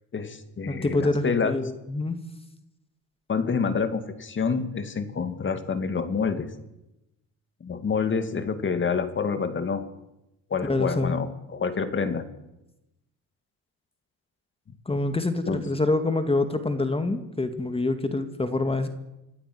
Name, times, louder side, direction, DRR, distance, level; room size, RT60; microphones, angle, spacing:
voice 1, 0.1-1.5 3.3-6.5 7.6-9.9 10.5-12.3 15.5-15.6, left 5 dB, 35° left, 10 dB, 2.6 m, -27 dB
voice 2, 0.7-2.2 10.6-11.2 14.9-18.9, left 2 dB, 15° left, 8 dB, 2.2 m, -26 dB
26.0 x 14.5 x 9.6 m, 0.94 s
cardioid pair, 110°, 36 cm